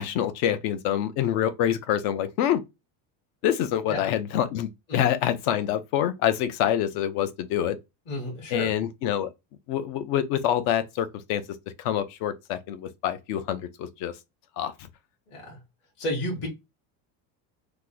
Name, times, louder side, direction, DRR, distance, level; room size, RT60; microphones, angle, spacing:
voice 1, 0.0-2.6 3.4-7.8 8.5-9.3 9.7-11.4 11.8-14.1 14.6-14.9, left 10 dB, 50° left, 0.6 m, -26 dB
voice 2, 8.1-8.7 15.3-15.6 16.0-16.5, left 1 dB, 30° left, 0.9 m, -32 dB
3.0 x 2.1 x 3.6 m
cardioid pair, 175°, 38 cm